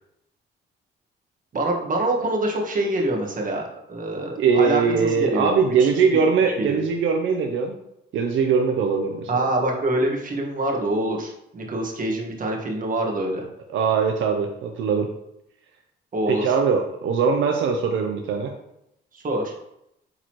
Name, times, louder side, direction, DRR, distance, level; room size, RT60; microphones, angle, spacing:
voice 1, 1.5-5.5 5.8-6.2 6.6-6.8 9.3-13.5 16.1-16.5 19.1-19.5, right 1 dB, 45° right, 0 dB, 1.6 m, -25 dB
voice 2, 4.4-7.7 8.1-9.4 13.7-15.1 16.3-18.5, right 5 dB, 80° right, 3 dB, 0.7 m, -21 dB
8.8 x 4.0 x 3.1 m, 0.81 s
cardioid pair, 90°, 20 cm